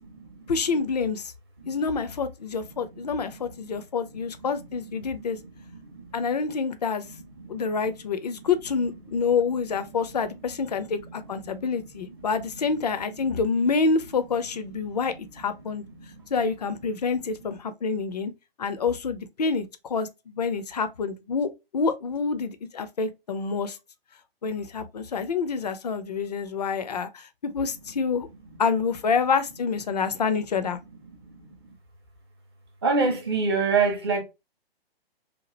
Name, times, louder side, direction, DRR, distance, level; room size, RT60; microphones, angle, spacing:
voice 1, 0.5-1.3 1.7-5.4 6.1-7.0 7.5-15.8 16.3-18.3 18.6-23.8 24.4-28.3 28.6-30.8, left 5 dB, 40° left, 0.4 m, -27 dB
voice 2, 32.8-34.2, right 4 dB, 25° right, 0.5 m, -23 dB
2.8 x 2.3 x 2.9 m
figure-of-eight pair, 130°, 31 cm